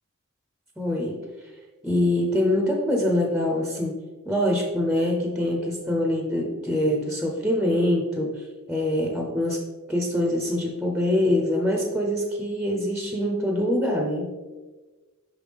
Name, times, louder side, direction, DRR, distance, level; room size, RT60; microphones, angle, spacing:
voice 1, 0.8-1.2 1.8-4.0 4.3-9.6 9.9-14.3, left 1 dB, 5° right, 0 dB, 0.6 m, -24 dB
5.7 x 5.0 x 3.4 m, 1.3 s
head